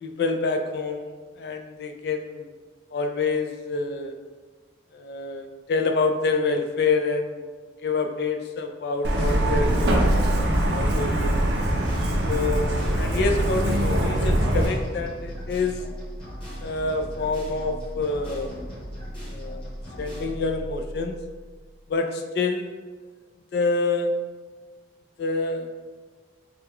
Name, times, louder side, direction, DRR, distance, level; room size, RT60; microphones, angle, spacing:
voice 1, 0.0-1.1 1.4-2.5 2.9-4.1 4.9-7.4 7.8-11.4 12.3-15.9 16.6-18.7 19.3-19.7 20.0-21.2 21.9-22.7 23.5-24.1 25.2-25.7, left 3 dB, 60° left, 5 dB, 0.3 m, -27 dB
Truck, 9.0-14.7, right 1 dB, 65° right, 0.5 m, -22 dB
sound 1, 11.7-21.7, equal, 30° left, 1.2 m, -37 dB
3.3 x 2.2 x 3.5 m, 1.4 s
head